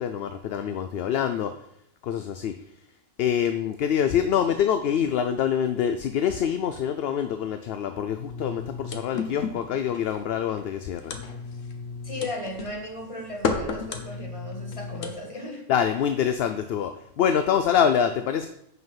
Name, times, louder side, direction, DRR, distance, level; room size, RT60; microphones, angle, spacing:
voice 1, 0.0-1.6 2.0-2.6 3.2-11.1 15.7-18.5, left 8 dB, 60° left, 9 dB, 0.7 m, -25 dB
sound 1, 8.2-15.2, left 5 dB, 80° left, 1.4 m, -33 dB
voice 2, 12.0-15.6, left 1 dB, 25° left, 1 dB, 1.7 m, -36 dB
7.8 x 5.5 x 5.7 m, 0.75 s
omnidirectional pair, 1.3 m